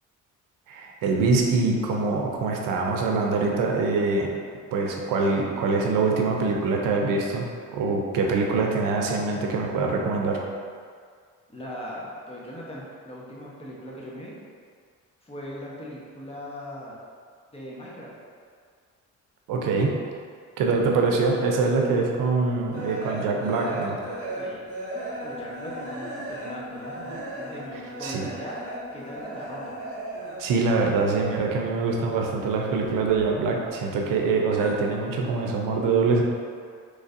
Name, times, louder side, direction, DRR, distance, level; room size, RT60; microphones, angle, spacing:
voice 1, 0.7-4.3 4.7-10.4 19.5-19.9 20.6-24.0 28.0-28.3 30.4-36.2, right 4 dB, 85° right, 0 dB, 0.6 m, -24 dB
voice 2, 11.5-14.3 15.2-17.0 17.5-18.1 24.3-24.6 25.2-28.6 28.9-29.8, equal, 20° left, -5 dB, 0.9 m, -39 dB
sound 1, 22.7-30.6 30.9-32.1 32.4-33.8 34.1-34.7, right 1 dB, 45° right, 1.4 m, -36 dB
3.9 x 3.1 x 2.6 m, 2.1 s
cardioid pair, 85°, 32 cm